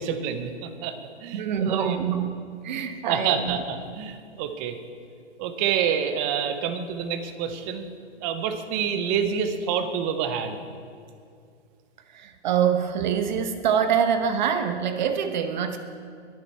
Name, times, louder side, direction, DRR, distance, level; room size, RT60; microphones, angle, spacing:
voice 1, 0.0-2.0 2.7-4.8 5.4-7.9 8.2-10.6, right 7 dB, 15° right, 8 dB, 0.5 m, -28 dB
voice 2, 1.3-3.6 12.1-15.8, right 7 dB, 40° right, 8 dB, 0.8 m, -25 dB
21.0 x 7.4 x 4.5 m, 2.3 s
hypercardioid pair, 145°, 35 cm